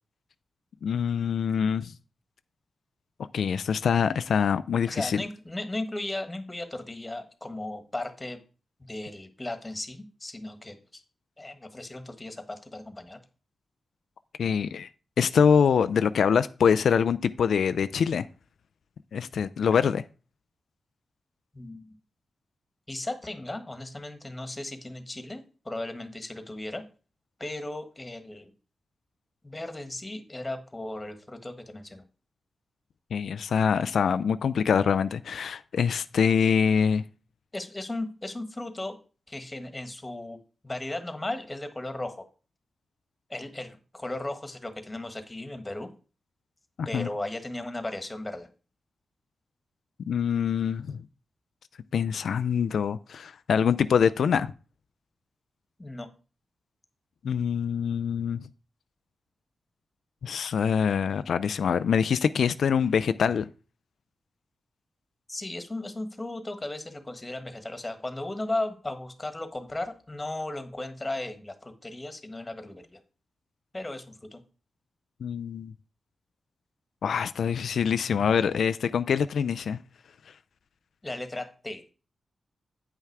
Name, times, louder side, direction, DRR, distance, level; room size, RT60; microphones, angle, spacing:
voice 1, 0.8-1.9 3.3-5.2 14.4-14.9 15.2-18.2 19.1-20.0 33.1-37.0 46.8-47.1 50.1-51.0 51.9-54.5 57.2-58.4 60.2-63.5 75.2-75.7 77.0-79.8, left 7 dB, 85° left, 0.3 m, -24 dB
voice 2, 4.8-8.4 8.8-10.8 11.4-13.2 21.5-21.9 22.9-26.8 27.4-28.5 29.4-32.0 37.5-39.0 39.3-40.4 40.6-42.2 43.3-45.9 46.8-48.5 55.8-56.1 65.3-73.0 73.7-74.4 81.0-81.8, left 2 dB, 20° left, 1.5 m, -36 dB
8.9 x 5.7 x 4.7 m
cardioid pair, 75°, 0 cm